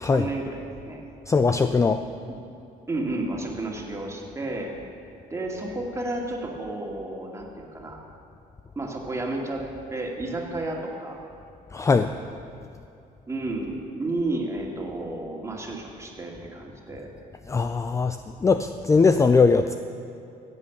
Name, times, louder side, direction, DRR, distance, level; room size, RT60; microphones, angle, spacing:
voice 1, 0.0-0.6 0.8-1.0 2.3-2.4 2.9-4.7 5.3-8.0 8.8-9.6 9.9-11.2 13.3-17.1, right 2 dB, 15° right, -1 dB, 2.3 m, -31 dB
voice 2, 1.3-2.0 11.7-12.1 17.5-19.8, left 4 dB, 20° left, 9 dB, 0.4 m, -20 dB
15.0 x 8.2 x 7.2 m, 2.6 s
cardioid pair, 110°, 17 cm